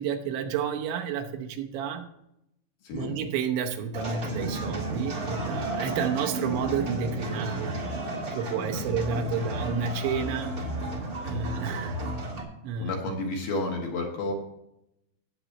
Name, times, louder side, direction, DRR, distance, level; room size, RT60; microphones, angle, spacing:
voice 1, 0.0-2.1 2.9-7.8 8.3-10.5 11.2-12.0 12.6-12.9, right 6 dB, 80° right, 3 dB, 3.2 m, -30 dB
voice 2, 2.8-3.2 8.7-8.9 9.5-9.6 12.8-14.3, left 2 dB, 60° left, 0 dB, 3.0 m, -31 dB
sound 1, 3.9-12.4, right 1 dB, 45° right, 1.2 m, -33 dB
18.0 x 7.9 x 3.0 m, 0.80 s
omnidirectional pair, 5.4 m